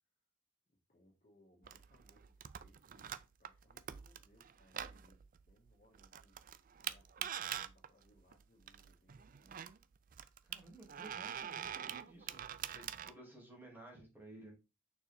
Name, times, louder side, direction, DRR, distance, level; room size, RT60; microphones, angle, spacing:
voice 1, 0.7-9.7 13.0-13.1, left 1 dB, 40° left, -3 dB, 1.9 m, -70 dB
sound 1, 1.6-13.1, right 9 dB, 45° right, 0.4 m, -45 dB
voice 2, 10.4-12.4 12.7-14.5, right 2 dB, 10° right, -3 dB, 2.5 m, -55 dB
6.6 x 4.7 x 3.5 m, 0.27 s
head